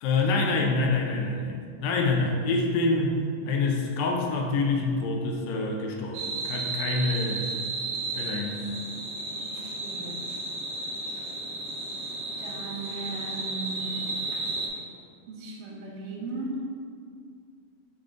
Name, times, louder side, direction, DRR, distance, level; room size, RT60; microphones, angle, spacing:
voice 1, 0.0-7.4 8.2-8.6, left 3 dB, 85° left, 1 dB, 2.3 m, -26 dB
sound 1, 6.1-14.7, right 3 dB, 75° right, 2.4 m, -33 dB
voice 2, 9.4-10.3 12.4-14.1 15.3-16.6, right 3 dB, 90° right, -2 dB, 2.7 m, -37 dB
6.7 x 3.8 x 3.7 m, 2.2 s
omnidirectional pair, 3.8 m